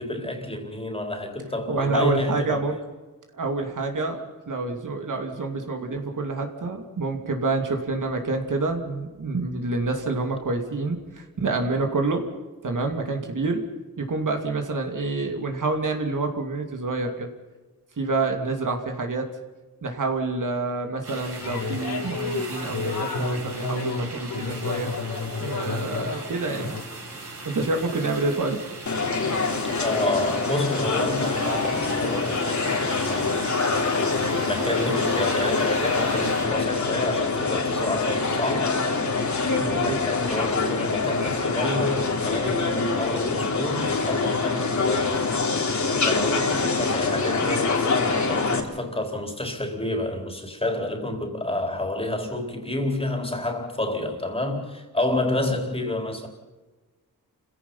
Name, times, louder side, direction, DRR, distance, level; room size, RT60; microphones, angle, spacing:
voice 1, 0.0-2.6 29.8-33.4 33.9-38.8 39.6-45.3 45.8-56.3, left 1 dB, 15° left, 4.0 m, -29 dB
voice 2, 1.7-2.7 3.3-12.2 12.6-13.6 14.0-17.3 18.0-19.3 19.8-24.9 25.4-26.7 27.4-28.6 39.6-40.0, right 3 dB, 60° right, 2.7 m, -27 dB
sound 1, 21.0-36.4, right 2 dB, 40° right, 5.0 m, -39 dB
sound 2, 21.4-26.8, left 4 dB, 70° left, 3.6 m, -31 dB
sound 3, 28.9-48.6, left 4 dB, 55° left, 3.2 m, -25 dB
29.5 x 16.5 x 5.6 m
wide cardioid pair, 110°, 36 cm